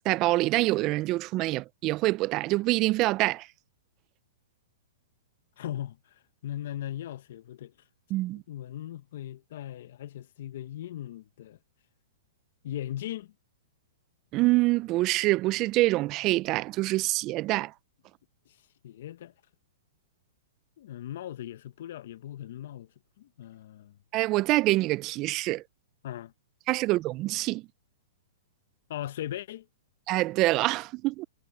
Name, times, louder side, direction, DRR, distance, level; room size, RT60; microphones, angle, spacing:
voice 1, 0.0-3.5 8.1-8.4 14.3-17.7 24.1-25.6 26.7-27.6 30.1-31.2, right 19 dB, 35° right, 0.4 m, -25 dB
voice 2, 5.6-7.7 8.5-11.6 12.6-13.3 18.5-19.3 20.8-22.9 23.2-24.0 26.0-26.3 28.9-29.7, left 12 dB, 60° left, 0.8 m, -38 dB
hypercardioid pair, 140°, 0 cm